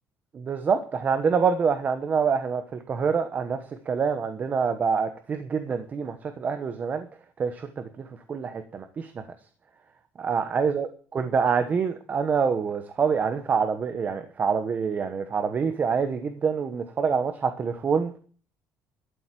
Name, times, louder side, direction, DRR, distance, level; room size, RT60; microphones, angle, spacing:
voice 1, 0.3-3.6 3.9-7.1 7.4-7.8 8.3-9.2 10.2-18.1, right 6 dB, 30° right, 8 dB, 1.1 m, -26 dB
13.0 x 7.9 x 7.6 m, 0.42 s
cardioid pair, 155°, 6 cm